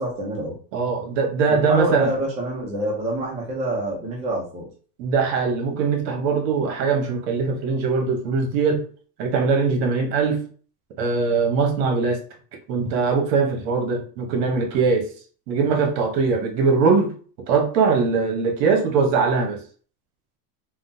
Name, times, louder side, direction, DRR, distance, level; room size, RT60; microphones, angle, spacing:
voice 1, 0.0-0.5 1.5-4.7, right 1 dB, 15° right, -2 dB, 0.4 m, -26 dB
voice 2, 0.7-2.1 5.0-8.8 9.2-10.4 11.0-12.2 12.7-15.1 15.5-17.1 17.5-19.6, right 5 dB, 80° right, 3 dB, 1.1 m, -21 dB
3.7 x 2.1 x 2.6 m, 0.42 s
supercardioid pair, 155°, 49 cm